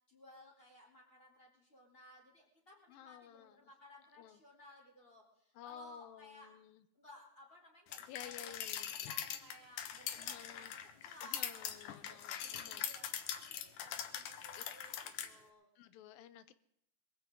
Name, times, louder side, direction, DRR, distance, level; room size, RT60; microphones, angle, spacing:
voice 1, 0.1-6.5 6.9-15.0 15.2-15.7, left 1 dB, 15° left, 0 dB, 3.6 m, -59 dB
voice 2, 2.9-3.7 4.2-4.4 5.5-6.9 8.1-8.9 10.1-10.7 11.2-12.9 14.5-14.6 15.8-16.5, left 11 dB, 90° left, 13 dB, 2.6 m, -53 dB
sound 1, 7.9-15.3, left 9 dB, 70° left, 2.4 m, -42 dB
22.0 x 15.0 x 3.8 m, 0.72 s
omnidirectional pair, 4.0 m